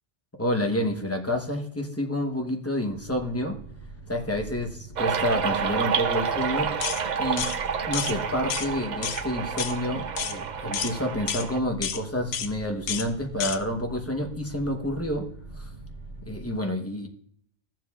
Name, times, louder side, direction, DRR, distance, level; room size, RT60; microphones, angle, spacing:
voice 1, 0.4-3.6 4.1-6.7 7.2-7.5 7.9-15.3 15.6-15.7 16.2-17.1, left 1 dB, 15° left, 3 dB, 0.9 m, -29 dB
sound 1, 2.9-16.6, right 3 dB, 25° right, 3.0 m, -43 dB
sound 2, 5.0-11.6, right 6 dB, 50° right, 0.6 m, -29 dB
sound 3, 6.8-7.0 7.4-7.6 7.9-8.1 8.5-8.7 9.0-9.2 9.6-9.8 10.2-10.4 10.7-10.9 11.3-11.5 11.8-12.0 12.3-12.5 12.9-13.1 13.4-13.6, left 9 dB, 65° left, 0.8 m, -30 dB
15.0 x 7.5 x 2.4 m, 0.65 s
omnidirectional pair, 1.2 m